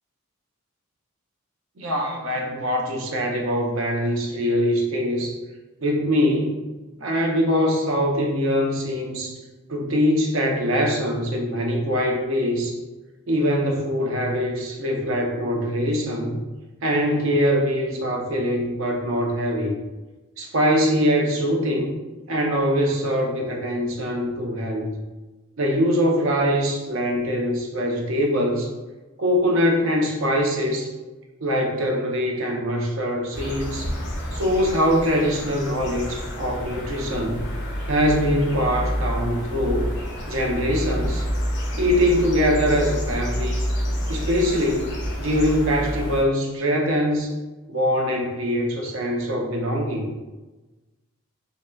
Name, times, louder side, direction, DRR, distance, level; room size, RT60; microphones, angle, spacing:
voice 1, 1.8-5.4 5.8-6.6 7.0-9.4 9.7-12.8 13.3-16.4 16.8-19.8 20.4-21.9 22.3-24.9 25.6-28.7 29.2-30.9 31.4-33.9 34.3-37.5 37.9-39.9 40.3-41.2 41.8-43.7 44.1-44.9 45.2-47.3 47.7-50.0, equal, 65° right, 0 dB, 0.5 m, -23 dB
sound 1, 33.3-46.2, equal, 50° left, 0.6 m, -29 dB
3.6 x 2.1 x 2.2 m, 1.2 s
head